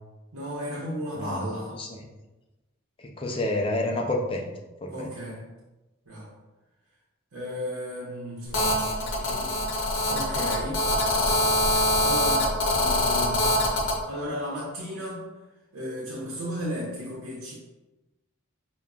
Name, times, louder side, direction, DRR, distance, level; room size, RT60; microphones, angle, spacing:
voice 1, 0.3-1.8 4.9-5.4 6.1-6.3 7.3-10.8 12.0-13.6 14.1-15.2 15.7-17.5, equal, 80° right, -5 dB, 0.8 m, -35 dB
voice 2, 1.2-2.0 3.0-4.5 4.8-5.1, left 1 dB, 25° left, 1 dB, 0.4 m, -29 dB
Telephone, 8.5-14.0, left 1 dB, 60° left, 0.8 m, -24 dB
5.1 x 2.2 x 2.3 m, 1.1 s
head